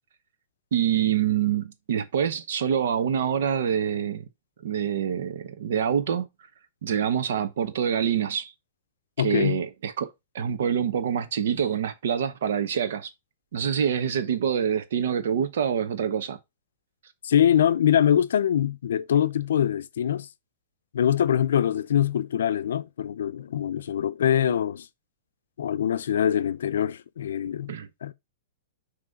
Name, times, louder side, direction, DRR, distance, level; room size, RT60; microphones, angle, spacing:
voice 1, 0.7-4.2 4.6-6.3 6.8-8.5 9.2-10.1 10.3-13.1 13.5-16.4 24.5-24.6 27.7-27.9, right 8 dB, 75° right, 1.1 m, -26 dB
voice 2, 9.2-9.6 17.2-20.3 20.9-24.9 25.6-27.7 28.0-28.1, left 9 dB, 80° left, 0.5 m, -23 dB
6.2 x 3.2 x 5.3 m
hypercardioid pair, 135°, 0 cm